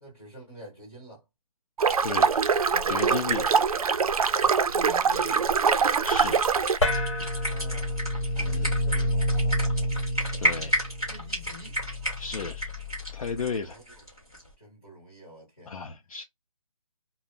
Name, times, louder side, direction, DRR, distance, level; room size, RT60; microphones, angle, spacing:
voice 1, 0.0-1.2 2.7-3.4 4.7-5.6 7.3-9.9 10.5-11.8 13.6-14.0 14.6-15.7, right 1 dB, 20° left, 1.1 m, -47 dB
sound 1, 1.8-6.8, right 6 dB, 85° right, 0.4 m, -23 dB
voice 2, 2.0-2.4 2.9-3.4 6.0-6.4 8.4-8.7 10.4-10.7 12.2-12.7 13.1-13.8 15.6-16.2, left 5 dB, 75° left, 0.5 m, -33 dB
sound 2, 3.7-14.5, equal, 10° right, 0.5 m, -34 dB
sound 3, 6.8-13.5, left 1 dB, 55° left, 0.9 m, -29 dB
2.0 x 2.0 x 3.7 m
hypercardioid pair, 180°, 18 cm